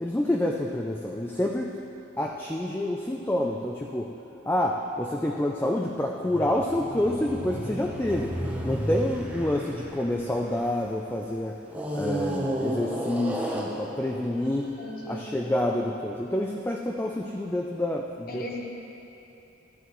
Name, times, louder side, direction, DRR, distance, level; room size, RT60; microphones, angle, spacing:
voice 1, 0.0-1.8 2.2-4.1 4.5-8.3 8.6-11.6 11.9-14.7 15.1-18.7, left 1 dB, 10° left, 0 dB, 0.4 m, -28 dB
sound 1, 6.3-10.9 11.7-15.1, equal, 5° right, 0.8 m, -33 dB
voice 2, 14.8-15.3 18.3-18.7, left 1 dB, 45° left, 0 dB, 1.2 m, -36 dB
13.5 x 11.0 x 3.1 m, 3.0 s
head